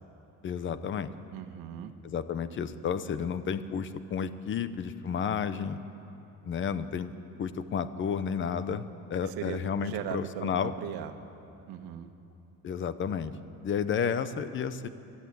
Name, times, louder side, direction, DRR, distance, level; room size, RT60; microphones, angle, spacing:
voice 1, 0.4-1.1 2.0-5.8 6.4-7.1 7.4-10.7 12.6-13.3 13.6-14.9, left 7 dB, 35° left, 13 dB, 0.8 m, -31 dB
voice 2, 1.3-1.9 9.2-11.1 11.7-12.1, right 10 dB, 85° right, 8 dB, 1.4 m, -38 dB
24.0 x 13.0 x 9.5 m, 2.9 s
cardioid pair, 160°, 35 cm